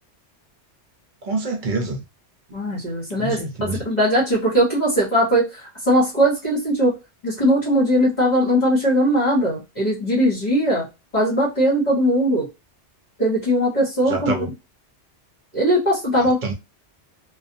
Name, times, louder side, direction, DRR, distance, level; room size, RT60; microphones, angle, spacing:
voice 1, 1.2-2.0 3.2-3.8 14.1-14.5 16.2-16.5, right 2 dB, 50° right, 0.7 m, -26 dB
voice 2, 2.5-3.4 3.8-6.9 7.2-10.8 11.1-12.5 13.2-14.3 15.5-16.4, equal, 40° left, 1.2 m, -19 dB
2.5 x 2.3 x 2.6 m
omnidirectional pair, 1.2 m